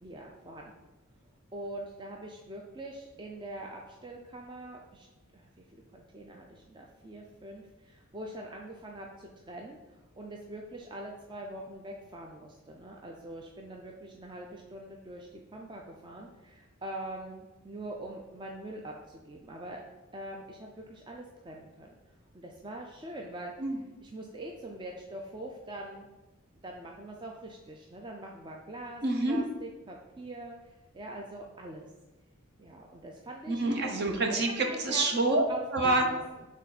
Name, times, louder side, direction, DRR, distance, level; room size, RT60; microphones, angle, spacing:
voice 1, 0.0-0.7 1.5-5.1 5.3-19.8 20.1-22.0 22.3-23.7 24.0-26.1 26.6-31.9 32.6-33.6 34.3-34.4 34.6-35.1 35.5-36.5, right 1 dB, 20° right, 0 dB, 0.4 m, -43 dB
voice 2, 29.0-29.4 33.5-35.4 35.7-36.0, right 2 dB, 50° right, 3 dB, 0.9 m, -27 dB
6.6 x 3.6 x 4.1 m, 1.1 s
head